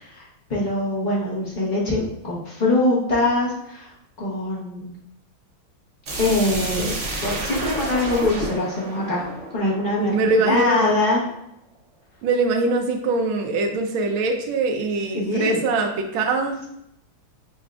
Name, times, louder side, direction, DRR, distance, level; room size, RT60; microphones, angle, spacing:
voice 1, 0.0-4.9 6.2-6.9 7.2-11.2 15.2-15.6, left 2 dB, 45° left, -6 dB, 0.6 m, -23 dB
sound 1, 6.0-10.8, right 2 dB, 60° right, 0.7 m, -31 dB
voice 2, 10.0-11.0 12.2-16.7, right 3 dB, 80° right, 3 dB, 1.4 m, -22 dB
6.9 x 2.3 x 2.4 m, 0.78 s
omnidirectional pair, 2.2 m